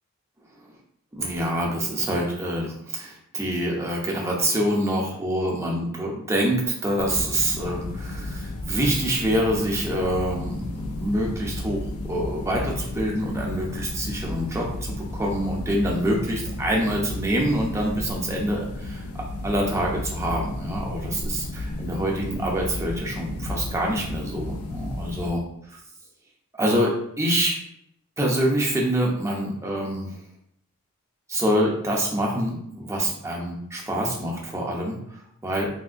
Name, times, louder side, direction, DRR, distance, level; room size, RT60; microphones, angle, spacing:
voice 1, 1.1-25.4 26.6-26.9 27.2-27.6 28.2-30.2 31.3-35.7, right 1 dB, 15° right, -2 dB, 0.6 m, -26 dB
sound 1, 7.0-25.3, left 1 dB, 75° left, 0.4 m, -33 dB
3.5 x 2.6 x 2.5 m, 0.72 s
head